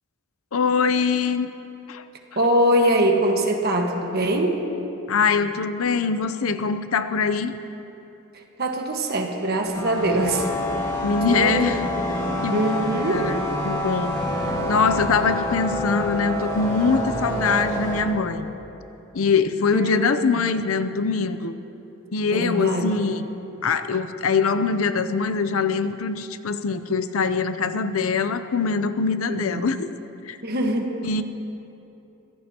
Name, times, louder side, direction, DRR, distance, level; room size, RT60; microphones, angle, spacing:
voice 1, 0.5-1.5 1.9-2.0 5.1-7.5 11.0-12.7 13.1-14.1 14.7-18.5 19.1-21.5 22.1-23.2 23.6-29.9 30.2-30.4 31.0-31.2, left 5 dB, 80° left, 11 dB, 0.6 m, -23 dB
voice 2, 2.3-4.6 8.3-10.5 10.8-11.7 12.5-13.3 19.7-20.3 22.3-22.9 29.3-29.6 30.4-31.1, right 1 dB, 50° right, 2 dB, 1.5 m, -23 dB
sound 1, 9.7-18.0, left 1 dB, 15° left, 2.0 m, -27 dB
24.5 x 16.0 x 2.9 m, 2.9 s
head